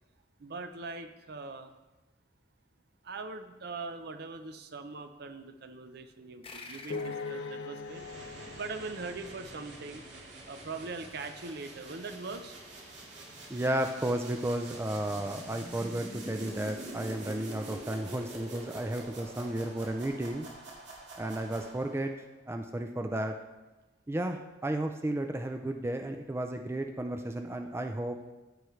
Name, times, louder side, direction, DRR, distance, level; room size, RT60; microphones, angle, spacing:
voice 1, 0.4-1.8 3.0-8.0 8.5-10.1 10.4-12.6, right 3 dB, 60° right, 8 dB, 0.6 m, -41 dB
sound 1, 6.4-9.4, left 3 dB, 30° left, 0.7 m, -51 dB
sound 2, 6.9-10.2, left 4 dB, 65° left, 0.4 m, -41 dB
sound 3, 7.8-22.1, right 1 dB, 75° right, 2.0 m, -46 dB
voice 2, 13.5-20.5 21.2-22.1 22.5-23.4 24.1-28.2, right 1 dB, 15° right, 5 dB, 0.4 m, -33 dB
14.0 x 5.0 x 3.2 m, 1.1 s
head